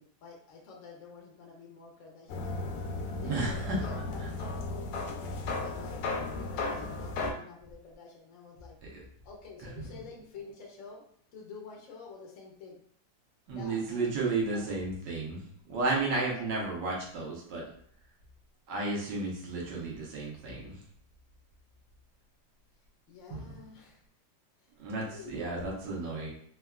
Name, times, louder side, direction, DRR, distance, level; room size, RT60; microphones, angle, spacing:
voice 1, 0.0-2.8 3.2-6.0 6.4-8.7 9.2-11.0 11.3-12.8 13.5-14.1 14.4-14.7 16.2-16.5 23.1-24.0 24.6-24.7 25.0-25.7, left 4 dB, 60° left, -2 dB, 0.8 m, -49 dB
sound 1, 2.3-7.3, left 3 dB, 75° left, 1.2 m, -35 dB
voice 2, 3.2-3.8 8.9-9.0 9.8-9.9 13.5-17.6 18.7-20.8 23.3-23.6 24.8-26.3, right 3 dB, 75° right, -3 dB, 1.4 m, -33 dB
3.8 x 2.3 x 2.2 m, 0.63 s
omnidirectional pair, 2.0 m